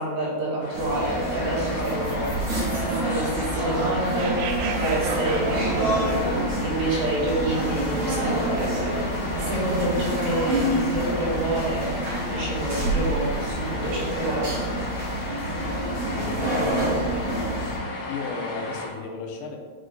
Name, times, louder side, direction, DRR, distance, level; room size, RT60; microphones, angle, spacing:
voice 1, 0.0-2.3 2.7-4.3 4.8-6.2 6.6-8.9 9.3-14.7, right 2 dB, 70° right, -7 dB, 4.1 m, -28 dB
sound 1, 0.6-18.9, left 2 dB, 55° left, 2.1 m, -35 dB
sound 2, 0.7-17.8, right 1 dB, 45° right, 2.3 m, -27 dB
sound 3, 1.8-8.1, right 6 dB, 90° right, 2.2 m, -37 dB
voice 2, 16.1-17.2 17.5-19.6, left 4 dB, 85° left, 2 dB, 3.2 m, -36 dB
10.5 x 4.1 x 3.3 m, 1.5 s
omnidirectional pair, 5.2 m